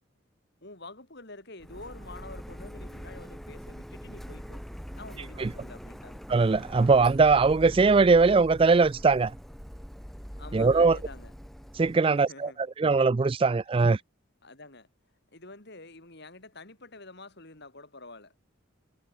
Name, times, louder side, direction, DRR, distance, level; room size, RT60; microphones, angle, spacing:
voice 1, 0.6-4.6 4.9-6.2 10.4-11.3 12.1-12.7 14.4-14.9 15.3-18.3, left 2 dB, 50° left, 4.1 m, -47 dB
Printer, 1.6-12.0, equal, ahead, 1.6 m, -43 dB
voice 2, 6.3-9.3 10.5-11.0 11.7-12.5 12.8-14.0, right 4 dB, 25° right, 0.3 m, -21 dB
head